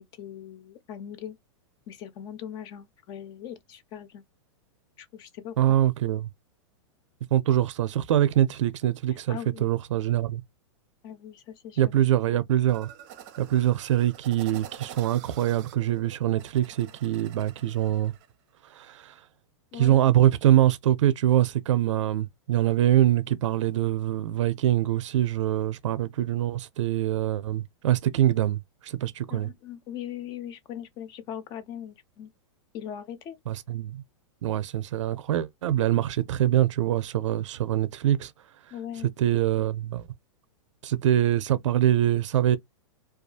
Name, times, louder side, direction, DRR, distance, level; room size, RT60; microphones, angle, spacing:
voice 1, 0.0-1.4 1.9-4.2 5.0-5.8 9.3-9.7 11.0-11.9 19.7-19.9 29.3-32.3 32.7-33.4 38.7-39.1, left 9 dB, 25° left, 0.5 m, -40 dB
voice 2, 5.6-6.3 7.3-10.4 11.8-12.9 13.4-18.1 18.7-19.2 19.8-29.5 33.5-34.0 34.4-38.3 39.2-40.0 40.8-42.6, right 12 dB, 85° right, 0.4 m, -24 dB
sound 1, 12.7-18.3, right 10 dB, 40° right, 0.6 m, -47 dB
2.7 x 2.3 x 2.2 m
supercardioid pair, 160°, 15 cm